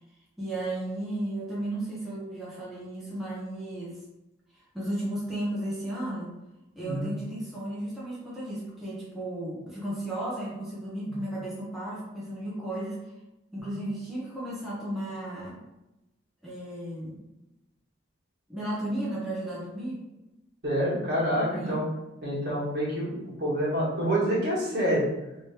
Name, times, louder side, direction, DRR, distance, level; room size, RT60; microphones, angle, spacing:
voice 1, 0.4-4.0 4.5-6.4 6.7-13.0 13.5-15.7 16.4-17.2 18.5-20.0 21.3-21.8, right 1 dB, ahead, -8 dB, 0.8 m, -34 dB
voice 2, 20.6-21.8 22.2-25.1, equal, 55° right, -7 dB, 1.5 m, -27 dB
3.2 x 3.1 x 3.0 m, 0.95 s
head